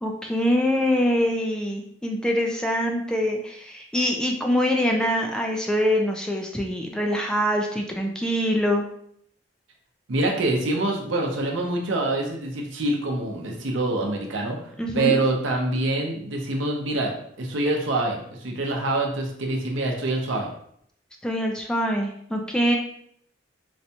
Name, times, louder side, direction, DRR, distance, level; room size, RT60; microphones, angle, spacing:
voice 1, 0.0-8.8 14.8-15.2 21.2-22.8, equal, 5° left, 1 dB, 0.3 m, -24 dB
voice 2, 10.1-14.6 14.9-20.5, right 2 dB, 90° right, 1 dB, 0.6 m, -25 dB
4.0 x 2.2 x 2.8 m, 0.68 s
head